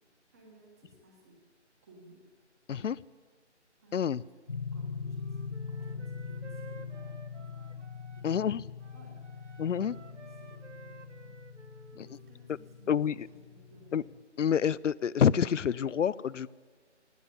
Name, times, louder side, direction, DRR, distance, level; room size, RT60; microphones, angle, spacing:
voice 1, 0.3-1.4 1.8-2.3 3.8-4.3 4.7-7.8 8.1-8.5 8.9-11.4 11.9-13.0 13.3-14.1, right 2 dB, 15° right, 1 dB, 1.5 m, -58 dB
voice 2, 2.7-3.0 3.9-4.2 8.2-8.6 9.6-9.9 12.0-12.1 12.5-12.6 12.9-13.3 13.9-14.0 14.4-16.5, left 8 dB, 85° left, 20 dB, 0.5 m, -27 dB
sound 1, 4.5-14.2, left 5 dB, 45° left, 0.6 m, -42 dB
Wind instrument woodwind instrument, 5.0-8.5 8.8-12.3, right 4 dB, 80° right, 1.3 m, -53 dB
17.5 x 10.0 x 8.3 m, 1.5 s
figure-of-eight pair, 165°, 36 cm